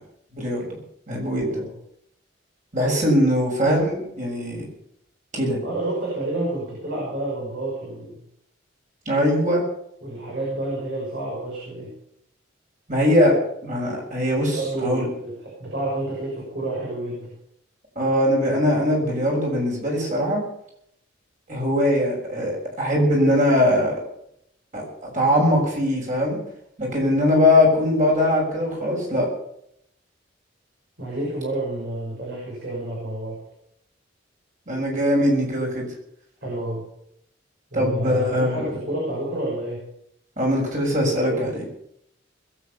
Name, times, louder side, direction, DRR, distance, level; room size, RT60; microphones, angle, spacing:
voice 1, 0.3-0.8 1.1-1.6 2.7-4.7 5.3-5.6 9.0-9.6 12.9-13.4 13.6-15.1 17.9-20.4 21.5-24.0 24.7-26.4 26.8-29.3 34.7-35.9 37.7-38.6 40.4-41.7, left 1 dB, 40° right, -1 dB, 6.8 m, -21 dB
voice 2, 5.6-8.2 10.0-11.9 14.5-17.3 31.0-33.4 36.4-36.8 37.7-39.9, right 1 dB, 60° right, -5 dB, 6.7 m, -29 dB
21.0 x 8.7 x 7.1 m, 0.74 s
head